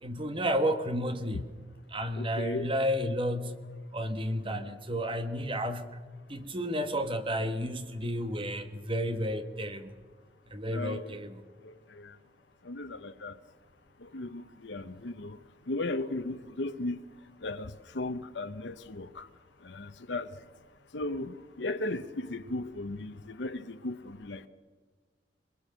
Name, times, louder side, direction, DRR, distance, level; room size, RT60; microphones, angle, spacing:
voice 1, 0.0-1.4 1.9-3.5 3.9-6.0 6.3-9.9 10.5-11.4, equal, 30° right, 1.3 m, -31 dB
voice 2, 2.2-2.7 4.4-4.7 10.7-11.2 11.6-12.1 12.6-13.4 14.0-15.4 15.7-17.0 17.4-19.3 19.6-20.3 20.9-24.5, left 2 dB, 70° left, 0.9 m, -36 dB
23.5 x 22.0 x 6.4 m
head